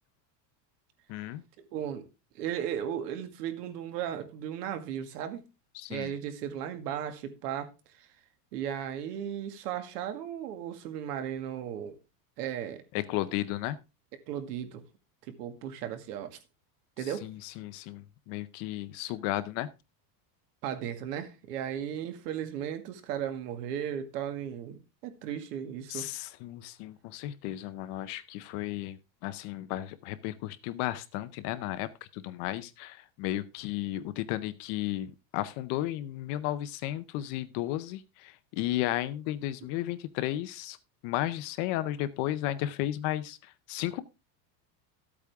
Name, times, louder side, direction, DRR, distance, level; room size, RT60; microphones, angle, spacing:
voice 1, 1.1-1.4 5.8-6.1 12.9-13.8 17.2-19.7 25.9-29.0 29.2-31.9 32.1-40.8 41.0-44.0, left 14 dB, 35° left, 0.6 m, -34 dB
voice 2, 1.7-2.0 2.3-5.4 5.9-7.7 8.0-8.1 8.5-12.0 12.4-12.8 14.3-14.8 15.3-16.4 17.0-17.3 20.6-26.1 37.2-37.3 39.6-39.7, right 9 dB, 75° right, 2.1 m, -36 dB
13.5 x 8.5 x 3.5 m
supercardioid pair, 170°, 48 cm